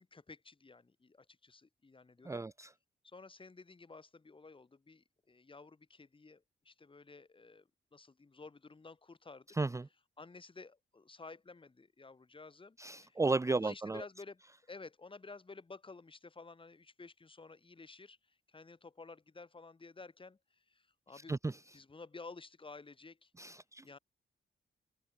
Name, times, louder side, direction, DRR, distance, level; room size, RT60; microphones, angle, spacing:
voice 1, 0.0-2.5 3.0-9.6 10.2-12.8 13.0-13.2 13.5-14.4 14.7-21.4 21.7-23.3 23.8-24.0, left 3 dB, 25° left, 3.3 m, -53 dB
voice 2, 2.2-2.7 9.6-9.9 12.8-14.0 21.3-21.6 23.4-23.8, right 3 dB, 15° right, 0.6 m, -34 dB
wide cardioid pair, 165°, 21 cm